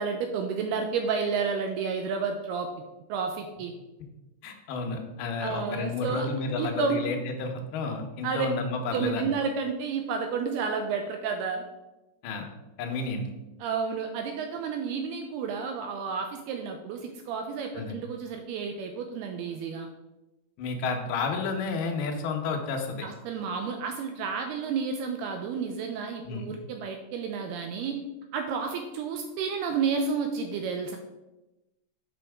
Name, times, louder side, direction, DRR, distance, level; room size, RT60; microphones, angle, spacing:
voice 1, 0.0-2.7 3.1-3.7 5.4-6.3 6.6-7.0 8.2-8.5 8.9-11.6 13.6-19.9 23.0-28.0 28.3-31.0, right 5 dB, 85° right, 4 dB, 2.4 m, -31 dB
voice 2, 4.4-9.3 12.2-12.4 12.8-13.2 17.7-18.0 20.6-23.1 26.2-26.5, left 4 dB, 75° left, 3 dB, 2.7 m, -31 dB
7.8 x 5.7 x 3.5 m, 1.0 s
omnidirectional pair, 5.0 m